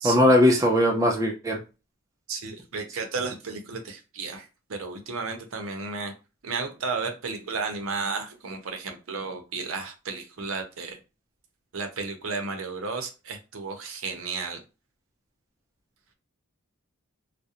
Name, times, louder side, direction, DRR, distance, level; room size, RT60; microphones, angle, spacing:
voice 1, 0.0-1.6, left 1 dB, 15° right, 2 dB, 0.4 m, -19 dB
voice 2, 2.3-6.1 6.4-11.0 11.7-14.6, right 4 dB, 70° right, 5 dB, 0.6 m, -33 dB
2.4 x 2.0 x 2.7 m, 0.30 s
head